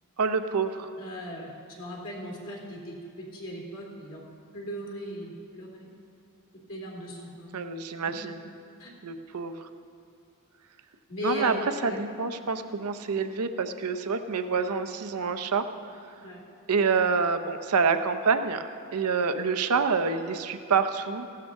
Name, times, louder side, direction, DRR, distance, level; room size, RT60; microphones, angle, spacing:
voice 1, 0.2-0.9 7.5-8.4 9.0-9.6 11.2-11.5 11.8-15.7 16.7-18.6 18.9-21.3, right 5 dB, 90° right, 9 dB, 0.7 m, -27 dB
voice 2, 1.0-4.2 4.5-5.7 6.7-7.5 8.8-8.9 11.1-12.0 14.5-14.6 16.2-16.4, equal, 65° left, -3 dB, 2.5 m, -37 dB
15.5 x 12.5 x 3.6 m, 2.4 s
head